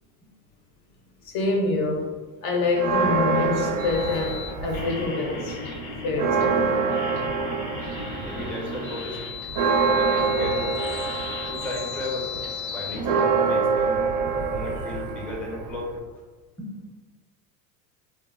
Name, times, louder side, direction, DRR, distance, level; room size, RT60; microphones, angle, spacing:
voice 1, 1.2-2.1 2.4-5.6 6.0-6.7, left 3 dB, 50° left, 2 dB, 0.6 m, -26 dB
Church bell, 2.8-5.1 5.5-5.6 5.9-16.0, right 5 dB, 40° right, 0.4 m, -26 dB
sound 1, 3.8-13.2, left 4 dB, 85° left, 1.0 m, -35 dB
voice 2, 8.1-9.2 9.8-10.7 11.5-12.3 12.7-14.0 14.5-15.9 16.6-16.8, left 2 dB, 5° left, -3 dB, 0.6 m, -35 dB
3.1 x 2.2 x 2.3 m, 1.3 s
hypercardioid pair, 90°, 49 cm